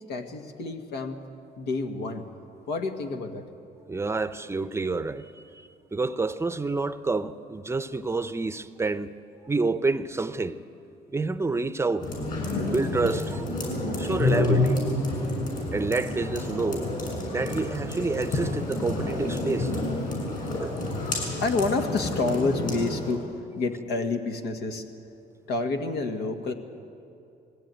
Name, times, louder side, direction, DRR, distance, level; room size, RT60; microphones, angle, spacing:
voice 1, 0.1-1.2 1.6-2.3 2.7-3.4 21.4-23.3 23.6-24.8 25.5-26.5, left 3 dB, 85° left, 1.8 m, -28 dB
voice 2, 3.9-5.4 5.9-9.1 9.5-10.6 11.1-12.1 12.6-13.4 14.0-14.8 15.7-16.9 17.3-19.7 20.6-20.7, right 3 dB, 15° right, 0.6 m, -28 dB
sound 1, 12.0-23.1, left 2 dB, 50° left, 7.3 m, -29 dB
20.5 x 16.5 x 9.2 m
cardioid pair, 110°, 17 cm